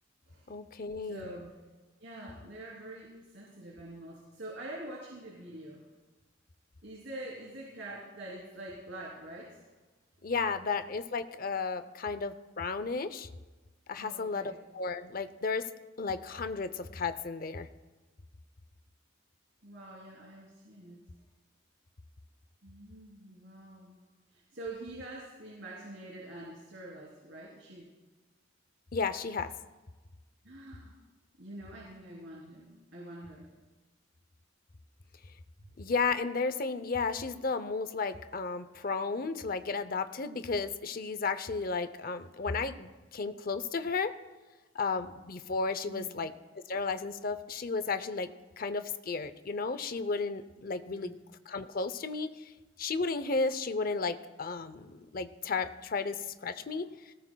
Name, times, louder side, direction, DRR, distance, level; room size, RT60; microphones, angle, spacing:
voice 1, 0.5-1.3 10.2-13.3 13.9-15.7 16.0-17.7 28.9-29.5 35.8-44.1 44.7-46.3 46.7-51.1 51.5-52.5 52.8-57.1, left 4 dB, 45° left, 12 dB, 0.6 m, -33 dB
voice 2, 1.0-1.5 2.0-5.8 6.8-9.6 14.0-14.6 19.6-21.0 22.6-24.0 24.3-27.9 30.4-31.0 31.4-33.5 45.9-46.2 50.9-51.2 56.5-56.9, right 1 dB, 60° right, -5 dB, 3.2 m, -45 dB
19.0 x 18.0 x 2.3 m, 1.2 s
head